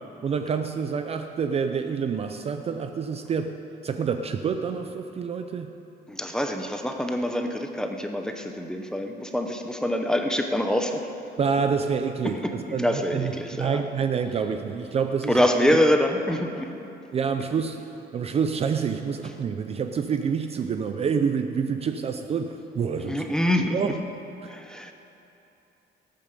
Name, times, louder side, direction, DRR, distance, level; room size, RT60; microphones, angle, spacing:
voice 1, 0.2-3.6 3.8-5.7 11.4-15.4 15.7-15.8 17.1-17.8 18.1-23.3 23.7-24.0 24.4-24.5, right 6 dB, 30° right, 7 dB, 0.5 m, -27 dB
voice 2, 6.1-11.1 12.4-13.8 15.3-16.7 23.1-23.9 24.5-24.9, left 1 dB, 5° left, 4 dB, 0.7 m, -25 dB
16.5 x 8.9 x 6.7 m, 2.9 s
cardioid pair, 175°, 19 cm